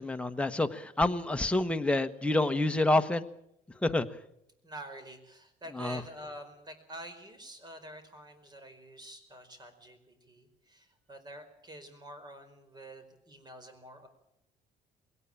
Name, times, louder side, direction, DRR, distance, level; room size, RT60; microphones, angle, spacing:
voice 1, 0.0-3.3 3.8-4.1 5.8-6.0, left 2 dB, 5° left, 6 dB, 1.3 m, -28 dB
voice 2, 4.6-14.1, right 1 dB, 25° right, 10 dB, 4.7 m, -48 dB
21.5 x 18.0 x 8.8 m, 0.79 s
cardioid pair, 110°, 17 cm